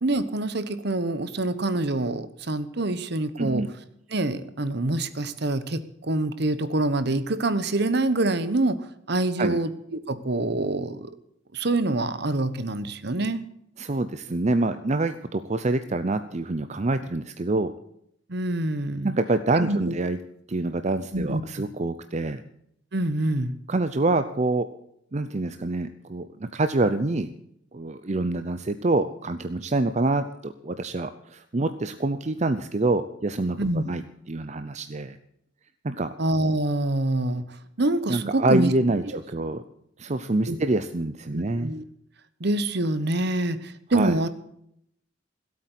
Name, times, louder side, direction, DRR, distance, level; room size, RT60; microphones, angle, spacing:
voice 1, 0.0-3.6 4.1-8.8 9.1-11.1 11.5-13.4 18.3-19.1 19.6-19.8 21.1-21.4 22.9-23.5 33.6-33.8 36.2-37.5 37.8-38.7 40.5-40.6 41.3-41.8 42.4-44.3, right 2 dB, 60° right, 13 dB, 1.1 m, -26 dB
voice 2, 13.8-17.7 19.0-20.2 20.5-22.4 23.7-24.7 25.1-27.3 27.7-33.6 33.8-35.2 35.8-36.1 38.1-39.6 40.0-41.7 43.9-44.2, right 2 dB, 40° right, 10 dB, 0.6 m, -26 dB
16.5 x 8.6 x 8.1 m, 0.73 s
head